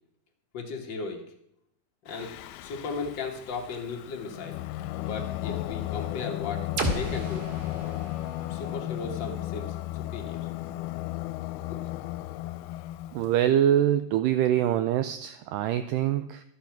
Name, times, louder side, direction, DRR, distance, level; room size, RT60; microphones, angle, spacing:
voice 1, 0.5-1.3 2.0-2.3 2.6-4.6 5.0-7.5 8.5-10.5 11.7-11.8, left 4 dB, 50° left, 2 dB, 1.3 m, -36 dB
Singing, 2.1-13.4, left 16 dB, 85° left, 2.4 m, -35 dB
sound 1, 6.8-10.6, right 1 dB, 60° right, 3.4 m, -35 dB
voice 2, 13.1-16.4, right 11 dB, 85° right, 10 dB, 1.9 m, -24 dB
13.0 x 8.2 x 5.9 m, 0.76 s
omnidirectional pair, 4.4 m